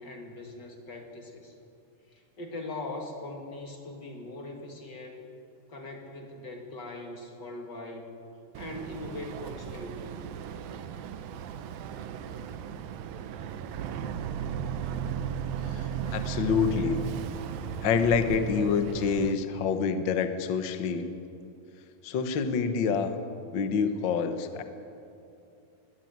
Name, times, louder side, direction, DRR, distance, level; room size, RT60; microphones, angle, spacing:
voice 1, 0.0-1.5 2.1-5.3 5.7-8.2 8.6-10.1, left 2 dB, 35° left, 3 dB, 2.1 m, -41 dB
Boat Water vehicle, 8.5-19.3, right 8 dB, 80° right, 2.7 m, -36 dB
voice 2, 15.7-17.0 17.8-21.1 22.0-23.2 23.5-24.6, left 6 dB, 70° left, 8 dB, 1.1 m, -27 dB
21.5 x 17.0 x 9.5 m, 2.6 s
omnidirectional pair, 4.1 m